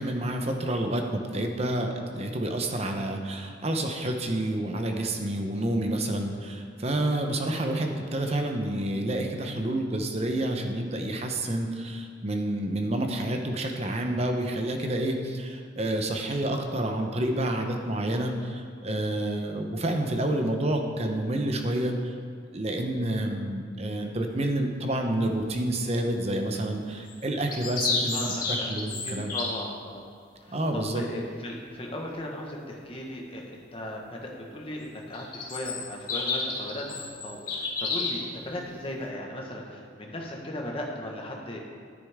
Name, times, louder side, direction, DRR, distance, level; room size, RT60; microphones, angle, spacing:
voice 1, 0.0-22.1 22.5-28.2 28.5-29.4 30.5-31.0, right 1 dB, 35° right, 4 dB, 0.8 m, -29 dB
sound 1, 27.1-29.6 35.1-38.3, left 4 dB, 50° left, 1.6 m, -31 dB
voice 2, 28.1-28.7 29.0-30.0 30.4-30.6 30.9-41.6, left 1 dB, 30° left, -1 dB, 1.4 m, -37 dB
10.5 x 9.9 x 3.6 m, 2.3 s
head